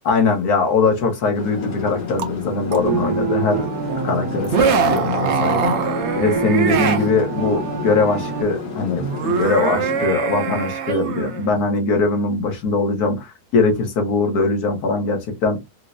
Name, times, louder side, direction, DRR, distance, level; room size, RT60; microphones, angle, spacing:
voice 1, 0.0-3.7 4.0-5.7 6.1-15.6, left 3 dB, 75° left, 1.5 m, -21 dB
sound 1, 1.3-10.1, left 3 dB, 55° left, 1.3 m, -31 dB
sound 2, 2.2-2.3 2.7-2.8 4.4-7.1 9.0-11.6, right 6 dB, 55° right, 0.8 m, -22 dB
sound 3, 2.8-8.4, right 6 dB, 75° right, 1.3 m, -26 dB
4.4 x 2.1 x 2.5 m
omnidirectional pair, 1.6 m